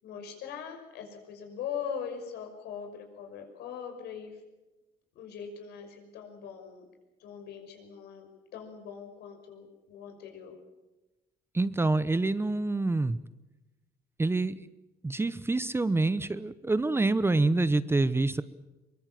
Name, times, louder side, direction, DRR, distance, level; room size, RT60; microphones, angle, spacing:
voice 1, 0.0-4.4 5.2-6.9 7.2-8.3 8.5-10.6, left 7 dB, 75° left, 4 dB, 6.0 m, -41 dB
voice 2, 11.5-13.2 14.2-14.7 15.0-18.4, right 2 dB, 15° right, 15 dB, 0.8 m, -26 dB
23.0 x 22.5 x 7.5 m, 1.1 s
cardioid pair, 110°, 17 cm